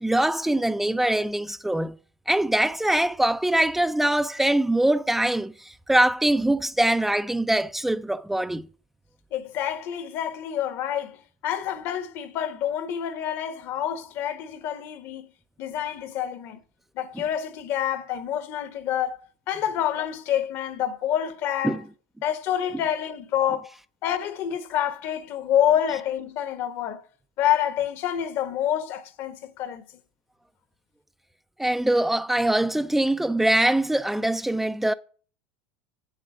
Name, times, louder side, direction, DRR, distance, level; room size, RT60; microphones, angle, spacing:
voice 1, 0.0-2.0 2.3-8.7 21.6-21.8 31.6-34.9, right 1 dB, 5° right, 0.5 m, -23 dB
voice 2, 9.3-15.3 15.6-16.6 16.9-19.2 19.5-21.8 22.2-23.7 24.0-27.0 27.4-29.8, left 10 dB, 55° left, 1.3 m, -27 dB
8.1 x 7.8 x 6.1 m
hypercardioid pair, 100°, 5 cm